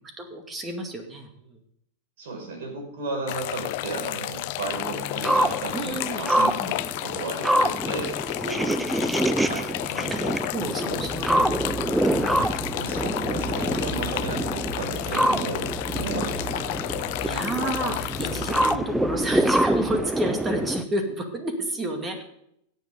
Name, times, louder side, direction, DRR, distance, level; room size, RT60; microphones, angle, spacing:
voice 1, 0.2-1.6 5.5-6.7 8.4-9.1 10.1-10.2 10.5-12.0 15.1-15.3 17.2-22.2, right 1 dB, 20° right, 4 dB, 2.3 m, -31 dB
voice 2, 2.2-8.6 9.4-10.4 10.8-11.0 12.3-17.4 18.5-18.7, right 3 dB, 70° right, 1 dB, 5.6 m, -35 dB
sound 1, 3.3-18.7, left 18 dB, 55° left, 0.5 m, -32 dB
sound 2, 4.7-20.8, right 1 dB, 5° right, 0.6 m, -26 dB
sound 3, 10.9-20.0, equal, 35° left, 2.7 m, -38 dB
16.5 x 8.3 x 3.8 m, 0.72 s
hypercardioid pair, 100°, 0 cm